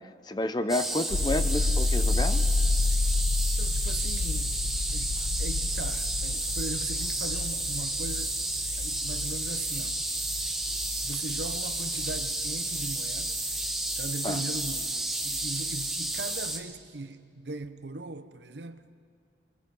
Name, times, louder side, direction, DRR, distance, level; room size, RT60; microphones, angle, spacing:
voice 1, 0.3-2.4 14.2-14.4, left 1 dB, 25° left, 0.7 m, -30 dB
sound 1, 0.7-16.6, right 2 dB, ahead, 1.1 m, -32 dB
sound 2, 1.1-14.9 15.3-16.2, left 3 dB, 90° left, 0.7 m, -31 dB
voice 2, 3.6-4.6 4.9-8.4 8.8-10.0 11.0-13.5 14.0-18.8, right 3 dB, 75° right, 0.8 m, -39 dB
27.0 x 23.0 x 5.4 m
head